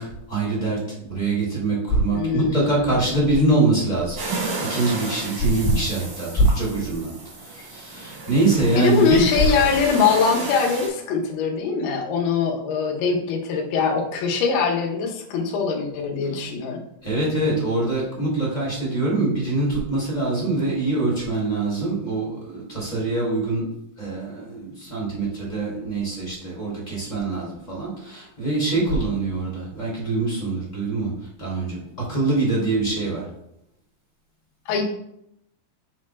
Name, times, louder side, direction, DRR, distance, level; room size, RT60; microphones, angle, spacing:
voice 1, 0.0-4.2 4.7-7.1 7.4-9.2 17.0-23.6 24.0-31.1 31.4-31.8 32.1-33.2, right 2 dB, 15° left, -7 dB, 2.0 m, -23 dB
voice 2, 2.1-3.3 8.8-16.8 34.7-34.8, left 5 dB, 80° left, 0 dB, 2.9 m, -22 dB
sound 1, 4.2-10.9, right 3 dB, 65° right, 3.5 m, -33 dB
7.3 x 6.8 x 2.2 m, 0.77 s
omnidirectional pair, 4.5 m